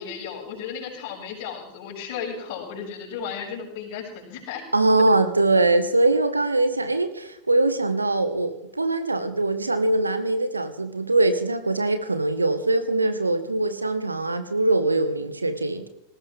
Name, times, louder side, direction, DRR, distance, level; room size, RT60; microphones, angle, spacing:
voice 1, 0.0-4.6, left 7 dB, 50° left, -2 dB, 6.5 m, -34 dB
voice 2, 4.7-15.9, right 2 dB, 80° right, 9 dB, 1.7 m, -22 dB
19.5 x 16.5 x 3.6 m, 0.80 s
figure-of-eight pair, 90°, 0 cm